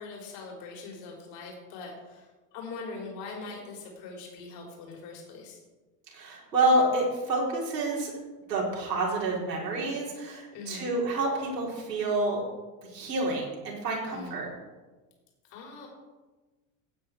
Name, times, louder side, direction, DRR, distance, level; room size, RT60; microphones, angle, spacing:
voice 1, 0.0-5.6 10.5-10.9 14.1-14.4 15.5-15.9, left 3 dB, 60° left, 0 dB, 3.8 m, -42 dB
voice 2, 6.1-8.1 8.5-12.4 12.9-14.5, right 2 dB, 85° right, -4 dB, 4.3 m, -28 dB
16.0 x 8.9 x 4.7 m, 1.3 s
hypercardioid pair, 75°, 48 cm